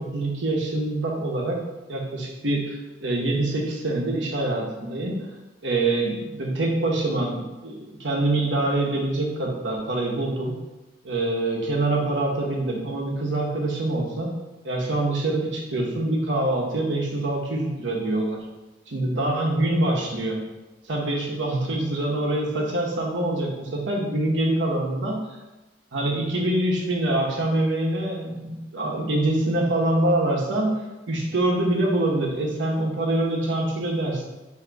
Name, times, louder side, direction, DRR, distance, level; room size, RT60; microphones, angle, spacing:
voice 1, 0.0-1.6 1.9-5.3 5.6-10.5 11.0-14.3 14.6-18.4 18.9-20.4 20.9-25.2 25.9-30.7 31.1-34.2, right 2 dB, 80° right, -1 dB, 1.0 m, -25 dB
3.9 x 2.8 x 4.6 m, 1.1 s
head